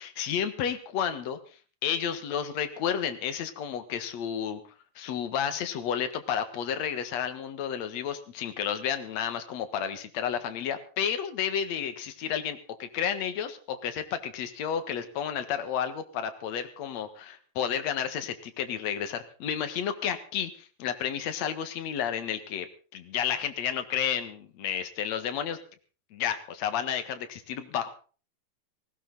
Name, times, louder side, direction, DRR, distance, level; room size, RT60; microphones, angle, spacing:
voice 1, 0.0-1.4 1.8-4.6 5.0-22.7 22.9-25.6 26.1-27.9, left 8 dB, 60° left, 8 dB, 2.8 m, -31 dB
19.0 x 17.0 x 4.1 m, 0.38 s
omnidirectional pair, 3.6 m